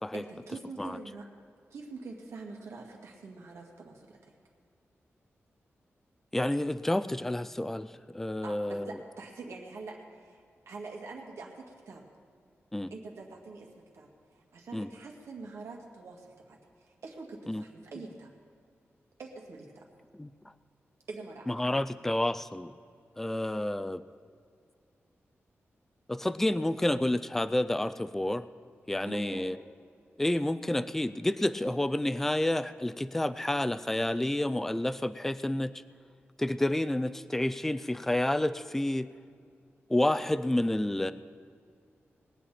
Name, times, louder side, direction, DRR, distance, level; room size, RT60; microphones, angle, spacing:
voice 1, 0.1-1.2 1.7-4.3 8.4-12.0 12.9-13.7 13.9-18.3 19.2-19.8 21.1-21.7 29.0-29.5, right 3 dB, 85° right, 0 dB, 2.2 m, -45 dB
voice 2, 6.3-9.0 12.7-12.9 14.7-14.9 17.5-17.6 20.2-20.3 21.5-22.7 23.2-24.0 26.1-28.5 28.9-29.6 30.2-35.7 36.4-39.1 39.9-41.1, left 1 dB, 5° left, 13 dB, 0.3 m, -29 dB
21.5 x 8.9 x 4.2 m, 2.3 s
wide cardioid pair, 170°, 5 cm